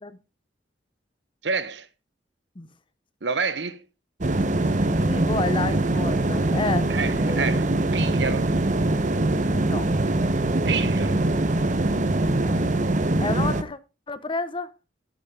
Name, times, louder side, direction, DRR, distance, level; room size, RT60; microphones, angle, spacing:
voice 1, 1.4-1.9 3.2-3.8 6.9-7.7 7.9-8.5 10.6-11.2, right 5 dB, 70° right, 1.1 m, -28 dB
sound 1, 4.2-13.6, right 2 dB, 45° right, 0.9 m, -23 dB
voice 2, 5.0-7.4 9.7-9.9 12.4-12.6 13.2-13.8 14.1-14.7, left 3 dB, 30° left, 0.7 m, -30 dB
13.5 x 8.2 x 3.6 m
head